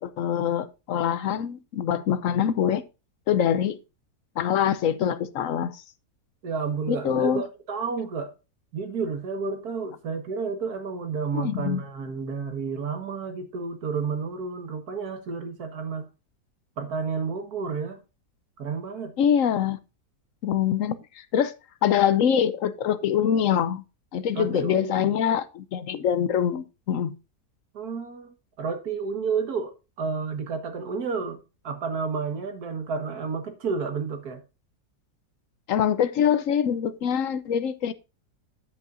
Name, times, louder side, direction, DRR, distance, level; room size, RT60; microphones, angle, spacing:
voice 1, 0.0-2.8 3.3-3.8 4.4-5.8 6.9-7.4 11.3-11.8 19.2-19.8 20.4-21.5 21.8-23.8 24.1-27.1 35.7-37.9, left 9 dB, 65° left, 0.9 m, -24 dB
voice 2, 6.4-8.3 8.7-16.1 16.8-18.0 18.6-19.1 24.4-25.2 27.7-31.4 31.6-34.4, right 5 dB, 65° right, 2.0 m, -31 dB
10.5 x 8.1 x 2.5 m
omnidirectional pair, 1.7 m